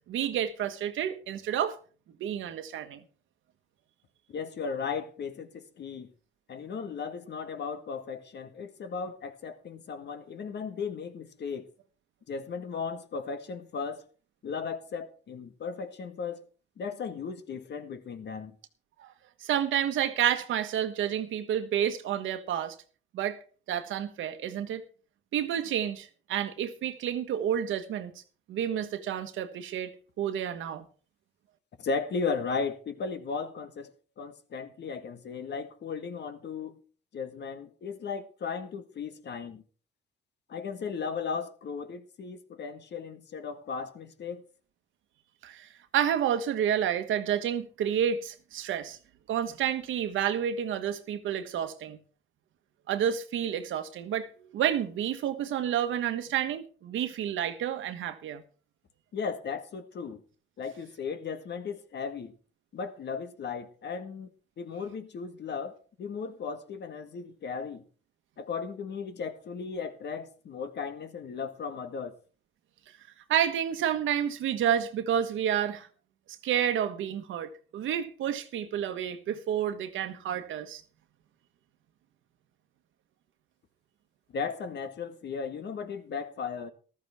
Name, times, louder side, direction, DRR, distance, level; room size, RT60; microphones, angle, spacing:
voice 1, 0.1-1.8 2.2-3.0 19.0-19.1 19.4-22.7 23.1-23.4 23.7-24.8 25.3-28.1 28.5-29.9 30.2-30.8 45.4-49.0 49.3-52.0 52.9-58.4 73.3-75.9 76.4-80.8, right 9 dB, 80° right, 1.4 m, -30 dB
voice 2, 4.3-6.1 6.5-11.7 12.3-14.0 14.4-16.5 16.8-18.5 31.8-36.8 37.1-39.6 40.5-44.4 59.1-60.2 60.6-62.3 62.7-64.3 64.6-67.8 68.4-72.1 84.3-86.7, left 5 dB, 60° left, 1.6 m, -36 dB
14.0 x 13.5 x 3.6 m
cardioid pair, 90°, 20 cm